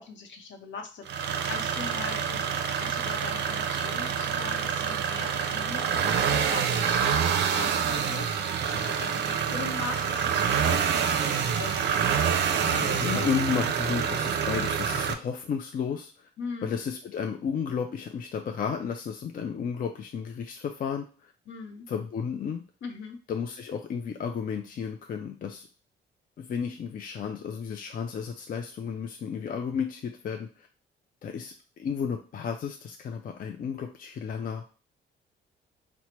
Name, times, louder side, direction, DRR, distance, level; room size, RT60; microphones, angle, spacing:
voice 1, 0.0-8.3 8.6-11.9 16.4-16.8 21.5-21.9 22.8-23.2, left 4 dB, 70° left, 4 dB, 0.8 m, -40 dB
sound 1, 1.1-15.1, right 7 dB, 60° right, 0.5 m, -27 dB
voice 2, 12.6-16.3 16.6-21.3 21.9-22.6 23.3-25.7 26.4-30.7 31.2-34.6, left 6 dB, 45° left, 4 dB, 0.4 m, -33 dB
4.3 x 2.1 x 3.0 m, 0.38 s
cardioid pair, 90°, 20 cm